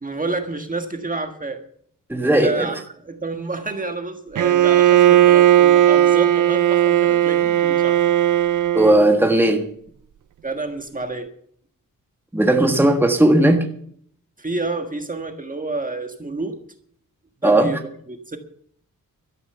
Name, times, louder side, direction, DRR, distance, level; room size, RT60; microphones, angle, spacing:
voice 1, 0.0-1.6 2.2-8.0 10.4-11.3 14.4-16.6 17.4-18.4, right 3 dB, 25° right, 5 dB, 1.6 m, -29 dB
voice 2, 2.1-2.7 8.7-9.6 12.3-13.6 17.4-17.7, right 1 dB, 5° right, 4 dB, 1.6 m, -16 dB
Bowed string instrument, 4.4-9.1, right 12 dB, 60° right, 0.5 m, -16 dB
13.0 x 10.0 x 6.9 m, 0.63 s
wide cardioid pair, 115°, 34 cm